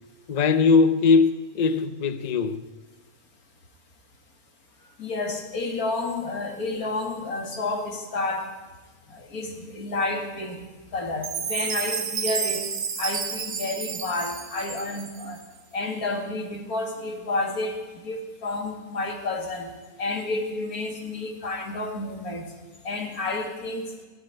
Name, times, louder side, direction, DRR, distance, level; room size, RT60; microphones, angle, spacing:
voice 1, 0.3-1.3 1.5-2.6, left 5 dB, 40° left, 0.6 m, -20 dB
voice 2, 5.0-8.5 9.1-10.6 10.9-12.7 13.0-15.4 15.7-19.7 20.0-22.4 22.8-23.9, left 2 dB, 75° left, 2.5 m, -30 dB
Chime, 11.2-15.4, right 6 dB, 55° right, 1.3 m, -31 dB
16.5 x 7.5 x 9.7 m
omnidirectional pair, 1.6 m